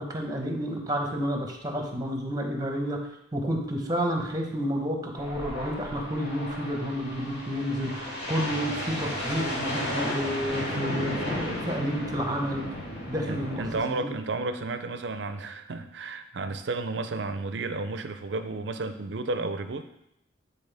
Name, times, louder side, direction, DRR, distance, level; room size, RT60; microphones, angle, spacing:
voice 1, 0.0-3.0 3.3-12.7 13.1-13.6 13.9-14.1, equal, 20° right, 2 dB, 1.0 m, -30 dB
sound 1, 5.2-13.8, left 1 dB, 60° left, 2.5 m, -34 dB
voice 2, 13.3-19.9, right 3 dB, 65° right, 9 dB, 0.5 m, -32 dB
9.4 x 4.2 x 3.4 m, 0.80 s
head